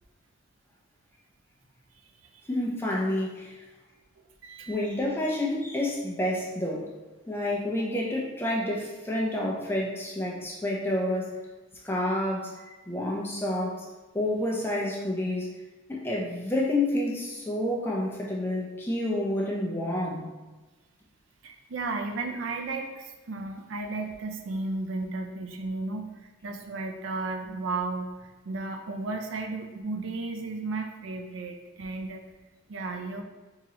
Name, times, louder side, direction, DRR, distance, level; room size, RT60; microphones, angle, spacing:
voice 1, 2.5-3.5 4.7-6.9 7.3-11.4 11.8-13.9 14.1-15.5 15.9-20.3, left 1 dB, 10° left, -3 dB, 0.5 m, -29 dB
voice 2, 4.2-4.8 21.4-32.2 32.7-33.2, right 3 dB, 75° right, 4 dB, 0.4 m, -34 dB
3.7 x 3.0 x 2.8 m, 1.2 s
head